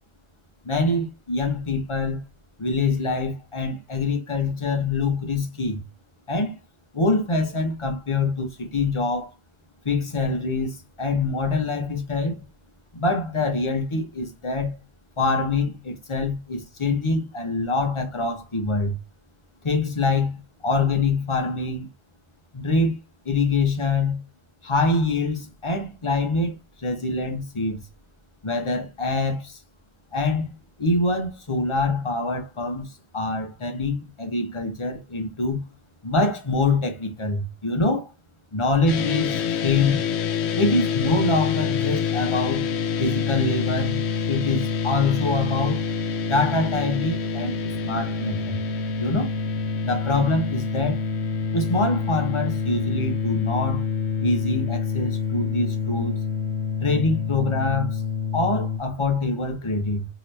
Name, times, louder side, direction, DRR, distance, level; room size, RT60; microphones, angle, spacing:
voice 1, 0.6-2.2 2.6-5.8 6.3-6.5 6.9-9.3 9.8-12.4 12.9-14.8 15.2-19.0 19.6-21.9 22.5-23.0 23.2-24.2 24.6-27.8 28.4-29.6 30.1-35.6 36.0-38.1 38.5-40.0 40.6-42.7 43.0-44.0 44.3-45.8 46.2-48.6 49.0-49.3 49.8-51.0 51.5-53.8 54.2-56.2 56.8-58.0 58.3-60.1, left 3 dB, 30° left, 0.6 m, -25 dB
sound 1, 38.9-58.8, left 6 dB, 70° left, 0.8 m, -27 dB
2.9 x 2.8 x 3.1 m
omnidirectional pair, 1.2 m